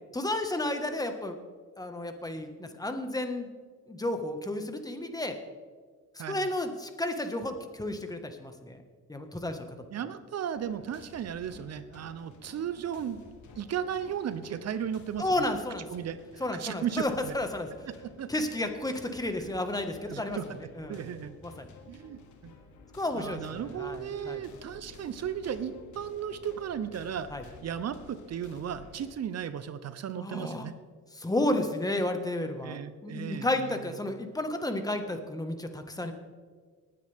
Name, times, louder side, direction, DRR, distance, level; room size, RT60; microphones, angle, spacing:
voice 1, 0.1-1.3 1.8-3.5 3.9-5.3 6.1-8.8 9.1-9.7 15.2-15.9 16.4-17.7 18.3-20.4 20.8-21.0 21.4-21.7 22.9-24.4 27.3-27.4 30.2-30.7 31.1-36.1, left 1 dB, 10° left, 6 dB, 1.6 m, -32 dB
voice 2, 9.9-13.2 13.6-15.3 15.9-17.4 18.0-18.3 19.4-19.5 20.1-20.6 20.8-21.3 21.9-22.5 23.1-27.3 27.6-30.7 32.6-34.1, right 8 dB, 55° right, 13 dB, 0.8 m, -35 dB
sound 1, 10.5-29.1, left 4 dB, 75° left, 1.8 m, -53 dB
19.5 x 9.4 x 3.6 m, 1.5 s
cardioid pair, 90°, 30 cm